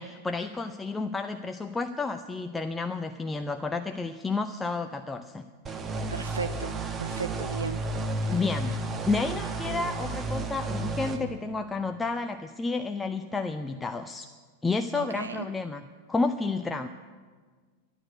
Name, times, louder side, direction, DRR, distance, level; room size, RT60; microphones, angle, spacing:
voice 1, 0.0-5.5 8.3-8.7 9.0-14.3 14.6-15.8 16.1-16.9, left 3 dB, 10° left, 8 dB, 0.5 m, -31 dB
sound 1, 5.7-11.2, right 2 dB, 20° right, 1.4 m, -32 dB
voice 2, 6.1-7.8 8.3-8.4 14.9-15.5, right 5 dB, 75° right, 10 dB, 0.6 m, -35 dB
12.5 x 11.5 x 8.4 m, 1.5 s
figure-of-eight pair, 90°, 0 cm